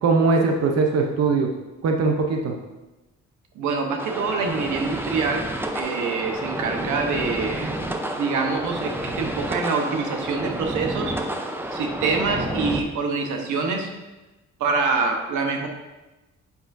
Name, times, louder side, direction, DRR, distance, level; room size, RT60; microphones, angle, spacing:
voice 1, 0.0-1.5 1.8-2.5, right 4 dB, 55° right, 2 dB, 0.8 m, -20 dB
voice 2, 3.5-7.7 8.2-11.2 11.7-13.9 14.6-15.7, right 4 dB, 85° right, 3 dB, 1.0 m, -25 dB
sound 1, 4.0-12.8, right 1 dB, 5° right, 0.6 m, -30 dB
8.1 x 5.7 x 2.6 m, 1.1 s
cardioid pair, 90°, 30 cm